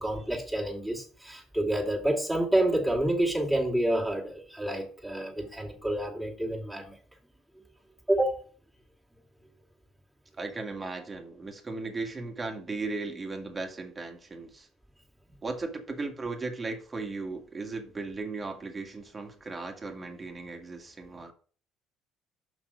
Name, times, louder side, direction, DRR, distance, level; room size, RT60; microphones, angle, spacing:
voice 1, 0.0-7.0 8.1-8.4 21.2-21.3, right 1 dB, 5° right, 2.7 m, -28 dB
voice 2, 10.4-14.7 15.4-21.3, right 3 dB, 25° right, 2.0 m, -36 dB
6.1 x 6.1 x 5.1 m
supercardioid pair, 80°, 0 cm